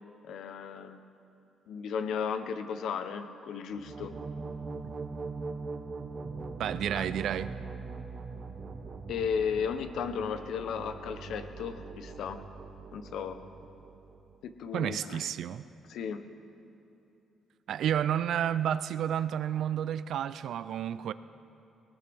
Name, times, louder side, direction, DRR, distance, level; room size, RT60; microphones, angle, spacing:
voice 1, 0.2-1.0 1.7-4.2 6.9-7.1 9.1-12.4 12.9-13.4 14.4-15.3 15.9-16.3, left 6 dB, 75° left, 9 dB, 0.8 m, -35 dB
sound 1, 3.7-14.3, right 4 dB, 40° right, 1.1 m, -41 dB
voice 2, 6.6-7.5 14.7-15.7 17.7-21.1, right 10 dB, 70° right, 15 dB, 0.4 m, -30 dB
18.5 x 18.5 x 3.5 m, 2.8 s
cardioid pair, 90°, 0 cm